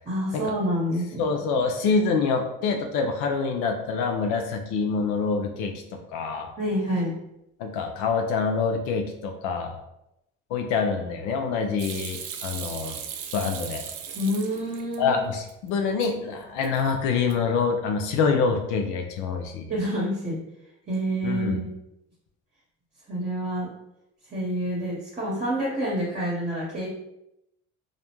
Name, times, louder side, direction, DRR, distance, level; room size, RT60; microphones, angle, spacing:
voice 1, 0.0-1.3 6.6-7.1 14.1-15.2 19.7-20.4 20.9-21.7 23.1-23.7 24.3-26.9, equal, 30° right, -5 dB, 0.9 m, -27 dB
voice 2, 1.2-5.7 6.1-6.5 7.6-9.8 10.5-13.0 13.3-13.8 15.0-19.7 21.2-21.6, left 5 dB, 80° left, 3 dB, 0.5 m, -26 dB
Hands / Sink (filling or washing), 11.8-15.0 15.4-16.1 16.4-16.9 17.2-17.6, right 7 dB, 75° right, 0.4 m, -37 dB
2.5 x 2.1 x 2.9 m, 0.85 s
supercardioid pair, 70°, 31 cm